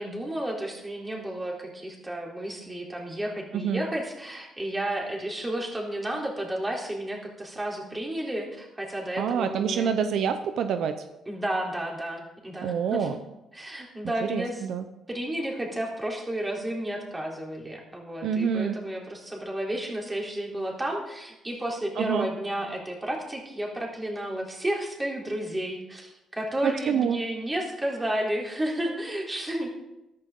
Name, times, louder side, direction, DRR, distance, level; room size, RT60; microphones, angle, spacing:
voice 1, 0.0-9.9 11.3-13.1 13.5-14.6 15.1-29.8, right 1 dB, 15° right, -1 dB, 3.7 m, -32 dB
voice 2, 9.2-11.0 12.6-13.2 14.2-14.8 18.2-18.7 22.0-22.3 26.6-27.2, right 7 dB, 75° right, 9 dB, 0.8 m, -26 dB
14.0 x 12.0 x 3.9 m, 0.93 s
cardioid pair, 90°, 0 cm